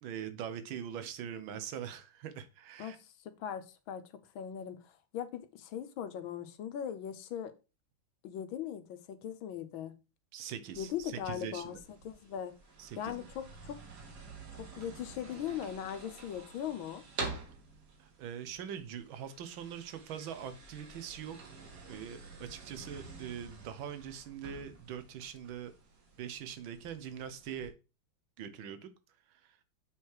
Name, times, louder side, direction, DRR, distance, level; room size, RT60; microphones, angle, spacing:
voice 1, 0.0-3.0 10.3-11.8 12.8-13.3 18.0-21.6 21.9-25.7 26.2-27.7 28.4-28.9 29.3-29.6, right 8 dB, 80° right, 1.7 m, -42 dB
voice 2, 3.4-4.1 4.3-7.5 8.2-9.9 10.8-11.8 12.0-12.6 13.0-13.8 14.5-17.0, left 9 dB, 85° left, 1.6 m, -39 dB
sound 1, 10.7-27.7, right 3 dB, 60° right, 2.1 m, -48 dB
7.0 x 4.8 x 4.5 m
omnidirectional pair, 2.1 m